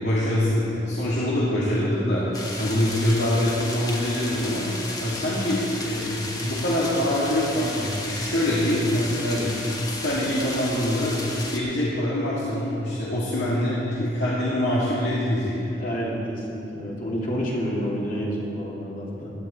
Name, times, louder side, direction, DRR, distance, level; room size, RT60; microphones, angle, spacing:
voice 1, 0.0-4.7 5.0-9.6 9.8-11.1 11.5-15.7, left 1 dB, 75° left, -8 dB, 2.4 m, -24 dB
sound 1, 2.3-11.6, left 2 dB, 20° left, 1.4 m, -34 dB
voice 2, 15.7-19.3, equal, 50° left, -4 dB, 2.8 m, -29 dB
16.5 x 11.0 x 4.4 m, 2.8 s
head